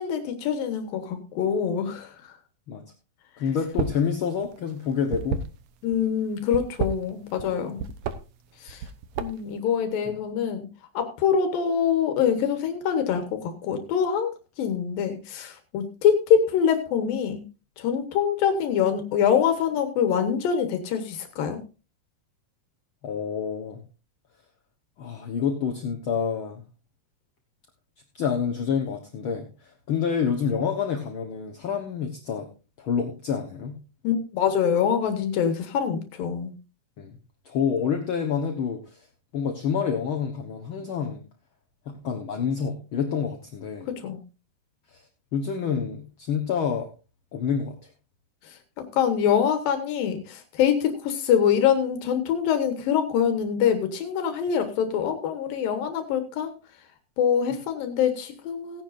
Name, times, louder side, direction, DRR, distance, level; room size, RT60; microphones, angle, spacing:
voice 1, 0.0-2.2 5.8-7.8 8.6-8.8 9.2-10.7 10.9-17.4 17.8-21.6 34.0-36.5 43.9-44.2 48.4-48.6 48.9-56.5 57.2-58.8, left 8 dB, 85° left, 7 dB, 3.0 m, -24 dB
voice 2, 3.4-5.4 23.0-23.8 25.0-26.6 28.1-32.5 32.8-33.8 37.0-37.2 37.4-39.1 39.3-41.2 41.9-43.9 44.9-45.0 45.3-46.9 47.3-47.8, left 7 dB, 60° left, 3 dB, 1.4 m, -28 dB
sound 1, 3.6-4.1 4.4-6.0 6.4-7.5 7.8-8.2 8.7-9.5, right 7 dB, 65° right, 1.8 m, -30 dB
17.0 x 10.5 x 2.6 m, 0.32 s
omnidirectional pair, 4.0 m